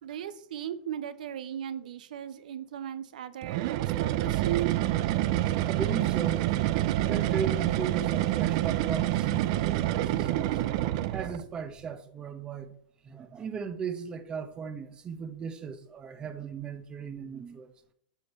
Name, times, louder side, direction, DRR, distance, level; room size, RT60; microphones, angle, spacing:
voice 1, 0.0-4.8, right 11 dB, 70° right, 0.9 m, -36 dB
sound 1, 3.4-11.5, right 14 dB, 50° right, 0.6 m, -27 dB
voice 2, 5.6-6.5 7.0-10.6 11.1-12.8 13.0-17.7, right 6 dB, 20° right, 0.9 m, -37 dB
7.6 x 5.3 x 6.7 m
hypercardioid pair, 140°, 4 cm